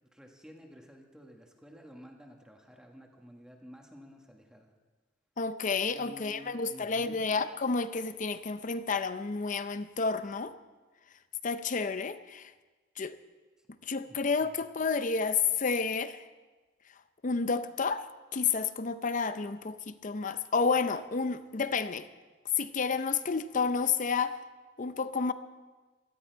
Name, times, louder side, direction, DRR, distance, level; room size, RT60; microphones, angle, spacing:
voice 1, 0.0-4.7 5.9-7.3 14.0-14.6, equal, 5° right, 1.5 m, -52 dB
voice 2, 5.4-10.5 11.4-12.5 13.0-13.2 13.8-16.2 17.2-18.0 18.3-22.1 22.6-24.4 24.8-25.3, left 5 dB, 40° left, 0.6 m, -30 dB
17.0 x 13.0 x 4.6 m
head